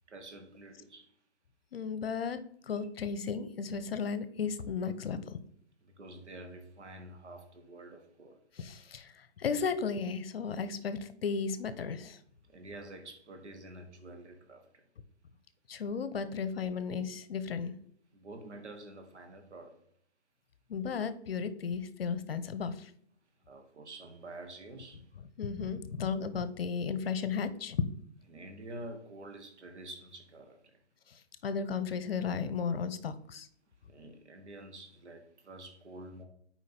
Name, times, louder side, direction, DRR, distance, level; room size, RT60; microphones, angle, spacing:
voice 1, 0.1-1.1 5.8-8.4 12.5-14.8 16.2-16.3 18.1-19.8 23.5-25.1 28.3-30.8 33.8-36.2, right 2 dB, 90° right, 4 dB, 1.5 m, -48 dB
voice 2, 1.7-2.4 2.7-5.4 8.6-12.2 15.7-17.7 20.7-22.9 25.4-27.9 31.4-33.5, left 6 dB, 60° left, 13 dB, 0.8 m, -34 dB
7.1 x 4.8 x 4.3 m, 0.66 s
hypercardioid pair, 160°, 34 cm